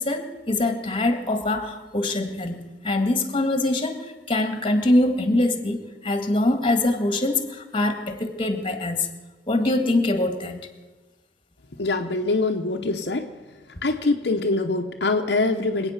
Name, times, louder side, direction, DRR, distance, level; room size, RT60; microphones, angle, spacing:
voice 1, 0.0-9.1 9.5-10.6, left 2 dB, 30° left, 7 dB, 1.8 m, -23 dB
voice 2, 11.8-13.3 13.8-15.9, left 3 dB, 70° left, 3 dB, 1.0 m, -24 dB
26.0 x 9.0 x 5.9 m, 1.3 s
head